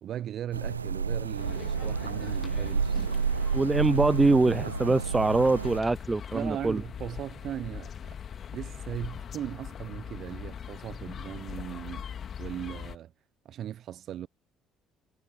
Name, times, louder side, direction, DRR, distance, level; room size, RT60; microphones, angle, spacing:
voice 1, 0.0-3.1 6.3-8.2 8.5-12.1 12.4-13.1 13.4-14.3, right 11 dB, 50° right, 0.9 m, -38 dB
sound 1, 0.5-5.8, right 5 dB, 80° right, 0.5 m, -30 dB
sound 2, 1.4-13.0, left 8 dB, 40° left, 2.4 m, -41 dB
voice 2, 3.5-6.8, right 3 dB, 15° right, 0.4 m, -24 dB
figure-of-eight pair, 50°, 0 cm